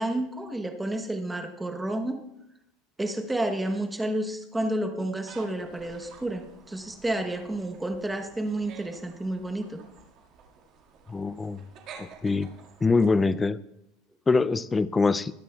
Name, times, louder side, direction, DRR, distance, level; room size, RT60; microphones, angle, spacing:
voice 1, 0.0-2.2 3.0-9.8, right 1 dB, 5° right, 5 dB, 0.9 m, -30 dB
sound 1, 5.2-13.1, right 6 dB, 40° right, 1.8 m, -51 dB
voice 2, 11.1-11.6 12.0-12.5 12.8-13.6 14.3-15.3, left 4 dB, 10° left, 16 dB, 0.3 m, -24 dB
20.5 x 9.9 x 2.3 m, 0.86 s
supercardioid pair, 170°, 0 cm